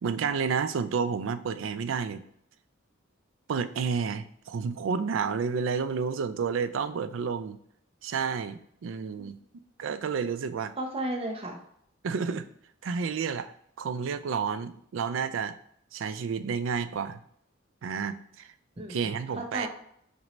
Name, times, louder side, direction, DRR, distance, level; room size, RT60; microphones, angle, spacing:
voice 1, 0.0-2.2 3.5-7.6 8.0-9.4 9.8-10.7 12.0-12.5 12.8-13.5 13.8-15.6 15.9-17.2 17.8-18.5 18.9-19.7, right 6 dB, 75° right, 12 dB, 0.4 m, -30 dB
voice 2, 10.8-11.6 18.8-19.7, right 1 dB, 30° right, 2 dB, 0.8 m, -34 dB
5.9 x 2.7 x 3.1 m, 0.70 s
head